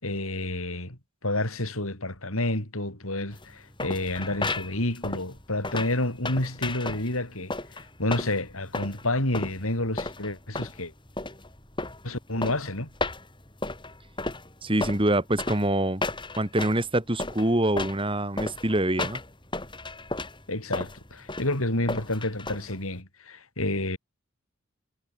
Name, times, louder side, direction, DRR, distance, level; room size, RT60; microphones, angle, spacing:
voice 1, 0.0-10.9 12.0-12.9 20.5-24.0, left 1 dB, 75° left, 5.9 m, -29 dB
sound 1, 3.3-23.0, left 2 dB, 20° left, 5.7 m, -34 dB
voice 2, 14.6-16.0 16.4-19.2, right 1 dB, 25° right, 2.1 m, -25 dB
head